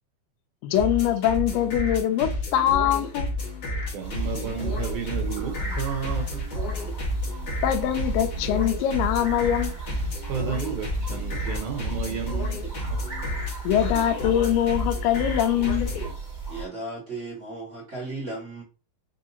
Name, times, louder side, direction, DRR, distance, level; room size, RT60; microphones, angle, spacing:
voice 1, 0.6-3.3 7.6-9.8 13.6-15.9, left 11 dB, 80° left, 2.2 m, -23 dB
sound 1, 0.7-16.1, left 1 dB, 60° left, 1.2 m, -31 dB
voice 2, 3.9-6.5 10.3-13.0, right 7 dB, 70° right, 2.0 m, -32 dB
sound 2, 4.0-16.7, right 5 dB, 15° right, 1.3 m, -36 dB
voice 3, 16.5-18.6, right 2 dB, 45° right, 1.0 m, -35 dB
5.5 x 2.7 x 2.6 m
omnidirectional pair, 4.2 m